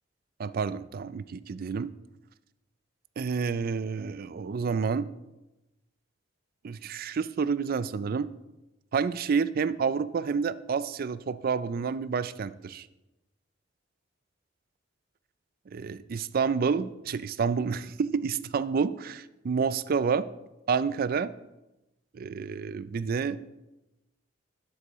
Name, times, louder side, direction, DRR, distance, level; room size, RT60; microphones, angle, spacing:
voice 1, 0.4-1.9 3.2-5.1 6.6-8.3 8.9-12.9 15.7-20.2 20.7-21.3 22.1-23.4, right 5 dB, 50° right, 15 dB, 0.4 m, -29 dB
11.5 x 8.3 x 3.0 m, 0.98 s
head